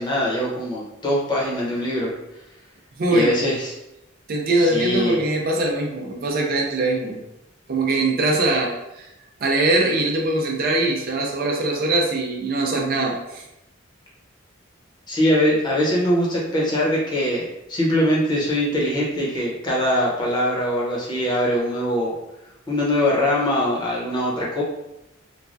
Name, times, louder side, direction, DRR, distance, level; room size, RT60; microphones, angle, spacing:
voice 1, 0.0-2.1 3.1-3.8 4.6-5.2 15.1-22.1 22.7-24.6, equal, 25° left, -5 dB, 0.8 m, -22 dB
voice 2, 3.0-3.3 4.3-7.2 7.7-9.1 9.4-13.4, right 2 dB, 50° right, 0 dB, 0.5 m, -22 dB
3.2 x 2.2 x 2.6 m, 0.88 s
head